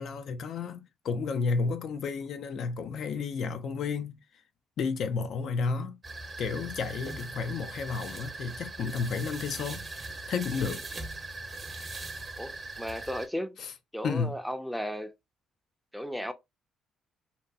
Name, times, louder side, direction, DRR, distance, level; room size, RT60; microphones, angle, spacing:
voice 1, 0.0-4.2 4.8-6.0 6.4-10.8 13.6-13.7 14.0-14.4, left 5 dB, 60° left, 0.3 m, -32 dB
sound 1, 6.0-13.3, right 2 dB, 35° right, 0.8 m, -40 dB
voice 2, 12.4-13.6 13.9-15.1 15.9-16.3, equal, ahead, 0.5 m, -35 dB
2.7 x 2.2 x 2.4 m
hypercardioid pair, 50°, 0 cm